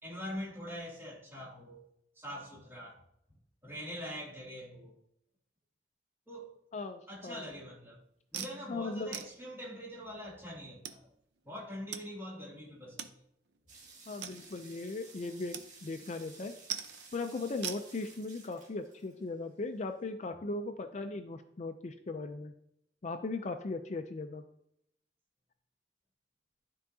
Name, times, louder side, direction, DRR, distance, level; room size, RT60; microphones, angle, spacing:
voice 1, 0.0-1.9 2.2-3.0 3.6-5.0 6.3-6.5 7.1-8.0 8.3-11.0 11.4-13.2, equal, 15° right, -6 dB, 2.5 m, -43 dB
voice 2, 6.7-7.4 8.7-9.2 14.1-16.5 17.1-22.5 23.0-24.4, left 3 dB, 40° left, 8 dB, 0.4 m, -38 dB
sound 1, 8.3-8.6 9.1-9.3 10.2-10.3 10.8-11.0 11.9-12.0 12.3-12.4 13.0-13.1 13.5-13.6 14.2-14.7 15.5-15.7 15.9-16.3 16.7-17.1 17.6-17.8, right 9 dB, 70° right, 0.6 m, -40 dB
sound 2, 13.7-19.5, right 3 dB, 45° right, 2.0 m, -55 dB
12.5 x 4.6 x 2.7 m, 0.75 s
head